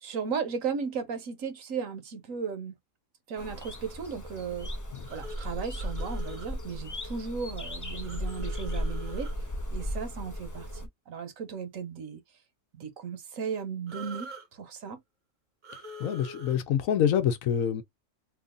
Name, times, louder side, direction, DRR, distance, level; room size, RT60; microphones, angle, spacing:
voice 1, 0.0-2.7 3.3-4.7 5.1-9.3 9.7-10.7 11.1-12.2 12.7-15.0, right 6 dB, 75° right, 1.2 m, -35 dB
sound 1, 3.4-10.9, equal, 25° left, 0.4 m, -36 dB
sound 2, 5.0-6.5 8.0-9.4 13.9-14.5 15.6-16.6, equal, 40° right, 0.8 m, -44 dB
voice 2, 16.0-17.8, left 9 dB, 75° left, 1.0 m, -26 dB
3.0 x 2.4 x 3.7 m
omnidirectional pair, 1.4 m